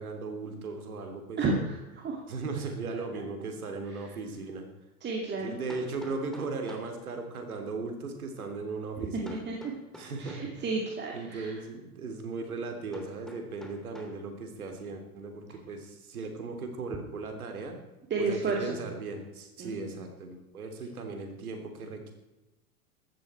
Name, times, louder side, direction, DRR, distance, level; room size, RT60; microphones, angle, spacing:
voice 1, 0.0-1.4 2.3-4.7 5.4-9.4 9.9-10.7 11.1-17.8 18.2-22.1, right 3 dB, 70° right, 5 dB, 3.2 m, -37 dB
voice 2, 1.4-2.2 3.9-4.0 5.0-5.5 9.0-9.5 10.2-11.6 18.1-18.8 19.6-19.9, right 3 dB, 25° right, 0 dB, 2.4 m, -32 dB
Hammer, 5.7-7.0 9.3-10.6 12.9-14.2, left 1 dB, ahead, 3.0 m, -48 dB
15.5 x 12.5 x 4.5 m, 1.0 s
figure-of-eight pair, 95°, 45 cm